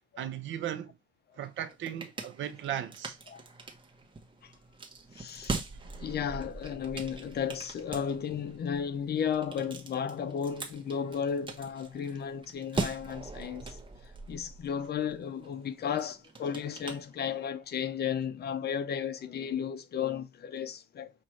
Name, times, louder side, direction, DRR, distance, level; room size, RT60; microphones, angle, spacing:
voice 1, 0.2-0.9 1.4-3.2, right 10 dB, 75° right, 0.8 m, -36 dB
sound 1, 1.4-17.7, right 3 dB, 25° right, 1.0 m, -42 dB
voice 2, 5.1-5.6 6.0-13.8 14.3-21.1, left 7 dB, 55° left, 0.7 m, -34 dB
6.0 x 2.6 x 3.0 m
cardioid pair, 90°, 20 cm